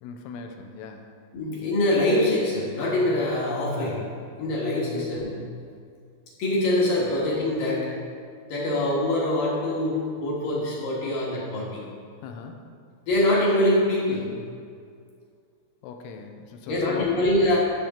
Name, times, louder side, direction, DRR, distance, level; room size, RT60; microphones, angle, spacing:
voice 1, 0.0-1.1 4.9-5.2 7.0-7.1 12.2-12.7 15.8-17.1, left 5 dB, 85° left, 4 dB, 2.9 m, -39 dB
voice 2, 1.3-4.0 4.4-5.3 6.4-7.9 8.5-11.8 13.1-14.3 16.7-17.6, left 1 dB, 65° left, -5 dB, 2.3 m, -24 dB
13.0 x 6.7 x 3.6 m, 2.3 s
omnidirectional pair, 5.7 m